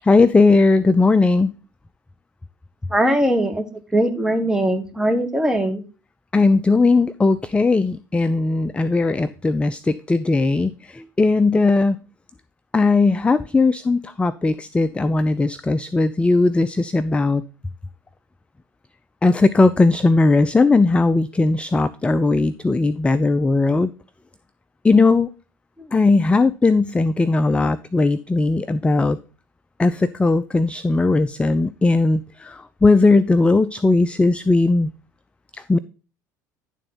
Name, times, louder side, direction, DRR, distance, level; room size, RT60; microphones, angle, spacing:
voice 1, 0.0-1.5 6.3-12.0 12.7-17.4 19.2-23.9 24.8-25.3 25.9-29.2 29.8-34.9 35.7-35.8, left 3 dB, 10° left, 15 dB, 0.4 m, -18 dB
voice 2, 2.9-3.6 3.9-5.8 25.8-26.1, right 1 dB, 5° right, 5 dB, 1.6 m, -20 dB
11.0 x 3.9 x 5.6 m, 0.35 s
figure-of-eight pair, 65°, 10 cm